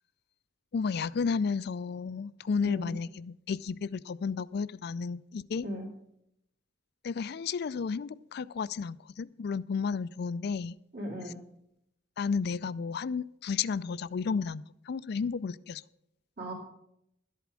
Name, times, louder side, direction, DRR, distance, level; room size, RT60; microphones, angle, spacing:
voice 1, 0.7-5.7 7.0-10.8 11.2-11.3 12.2-15.8, left 5 dB, 60° left, 0.4 m, -32 dB
voice 2, 10.9-11.4 16.4-16.5, equal, 60° right, 2.4 m, -37 dB
12.0 x 8.3 x 6.2 m
head